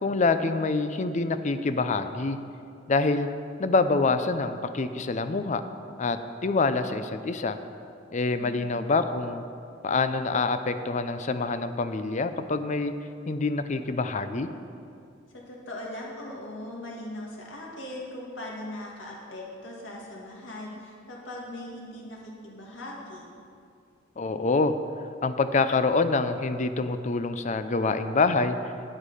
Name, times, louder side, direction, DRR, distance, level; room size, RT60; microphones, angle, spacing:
voice 1, 0.0-2.4 2.9-3.3 3.6-5.6 6.0-7.6 8.1-9.4 9.8-12.9 13.3-14.5 24.2-24.7 25.2-28.6, left 3 dB, 40° left, 10 dB, 0.5 m, -26 dB
voice 2, 15.3-23.2, left 1 dB, 90° left, -2 dB, 2.2 m, -40 dB
10.0 x 8.1 x 5.6 m, 2.4 s
head